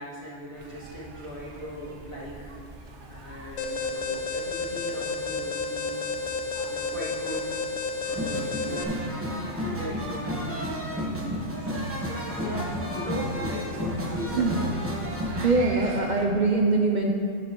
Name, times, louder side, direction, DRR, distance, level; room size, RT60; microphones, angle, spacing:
voice 1, 0.0-2.6 3.1-6.0 6.7-7.5 8.1-8.9 9.3-12.7 12.9-14.7 15.8-16.0, equal, 50° left, -6 dB, 2.1 m, -38 dB
sound 1, 0.5-16.3, right 3 dB, 75° right, 1.3 m, -46 dB
Alarm, 3.6-8.8, left 4 dB, 80° left, 1.1 m, -31 dB
sound 2, 8.1-15.6, equal, 10° right, 1.1 m, -31 dB
voice 2, 15.4-17.1, right 3 dB, 50° right, 0 dB, 0.7 m, -23 dB
10.5 x 9.4 x 3.0 m, 2.5 s
omnidirectional pair, 1.2 m